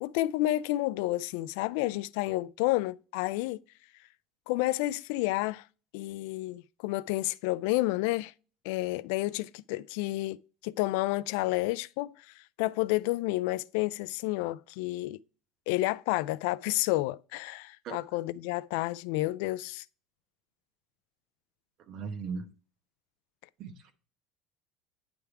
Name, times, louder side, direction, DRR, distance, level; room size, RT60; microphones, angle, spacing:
voice 1, 0.0-3.6 4.5-5.7 5.9-8.3 8.6-15.2 15.7-19.8, left 18 dB, 75° left, 0.3 m, -30 dB
voice 2, 21.9-22.5 23.6-23.9, right 5 dB, 45° right, 0.9 m, -37 dB
9.8 x 3.6 x 4.6 m
cardioid pair, 165°, 0 cm